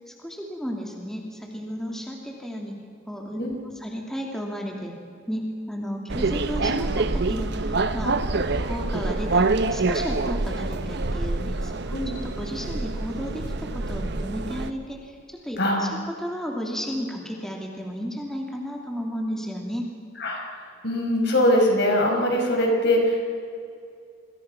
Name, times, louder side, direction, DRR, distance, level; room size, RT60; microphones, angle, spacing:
voice 1, 0.1-2.7 3.1-3.4 3.7-5.0 5.3-8.2 8.6-19.9, equal, 5° left, 0 dB, 2.8 m, -33 dB
sound 1, 6.1-14.7, right 3 dB, 60° right, 1.0 m, -26 dB
voice 2, 15.6-15.9 20.2-23.3, left 1 dB, 65° left, 1 dB, 5.5 m, -22 dB
28.5 x 22.0 x 6.0 m, 2.4 s
head